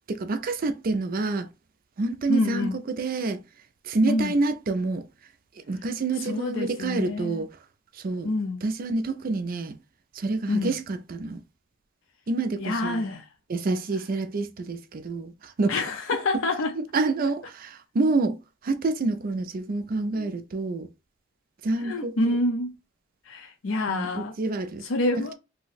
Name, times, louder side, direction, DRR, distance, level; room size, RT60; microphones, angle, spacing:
voice 1, 0.1-1.5 2.0-3.4 3.9-5.0 5.7-7.5 8.0-8.3 8.6-9.7 10.2-11.4 12.3-13.0 13.5-15.3 15.6-15.7 16.8-18.4 18.6-20.9 21.6-22.4 23.9-24.8, right 3 dB, 45° right, 0.4 m, -27 dB
voice 2, 2.3-2.8 4.1-4.4 6.2-7.5 8.2-8.6 10.5-10.7 12.6-13.3 15.7-16.7 20.2-20.3 21.8-22.7 23.3-24.4 24.8-25.3, left 2 dB, 70° left, 0.5 m, -27 dB
2.7 x 2.0 x 3.9 m
head